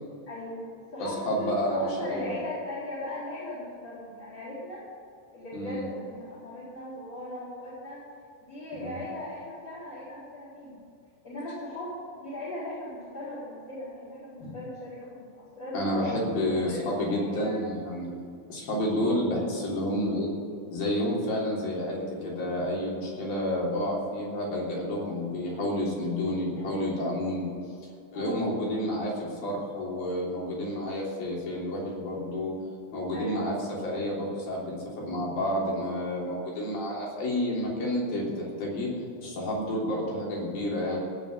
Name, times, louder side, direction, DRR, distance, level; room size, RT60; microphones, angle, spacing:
voice 1, 0.3-4.8 5.3-8.0 8.4-10.8 11.2-15.3 15.6-16.1 16.4-17.6 28.1-28.4 33.1-33.5, left 1 dB, 20° left, -11 dB, 4.4 m, -38 dB
voice 2, 1.0-2.3 5.5-5.8 8.8-9.0 14.4-14.5 15.7-20.3 20.7-27.5 28.1-32.5 32.9-33.5 33.8-38.9 39.2-41.0, left 1 dB, 60° left, -4 dB, 5.0 m, -30 dB
17.0 x 6.6 x 8.2 m, 2.5 s
omnidirectional pair, 4.8 m